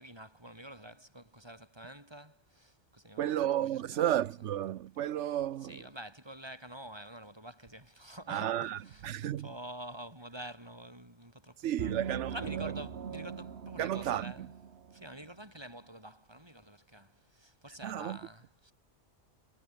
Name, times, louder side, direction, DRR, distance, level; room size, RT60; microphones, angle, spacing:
voice 1, 0.0-4.1 5.6-11.9 12.3-14.5 14.9-18.7, right 1 dB, 20° right, 5.0 m, -48 dB
voice 2, 3.2-5.8 8.3-9.5 11.6-12.3 13.8-14.5 17.8-18.2, right 11 dB, 85° right, 1.0 m, -32 dB
sound 1, 11.8-15.3, right 7 dB, 65° right, 1.4 m, -41 dB
omnidirectional pair, 1.2 m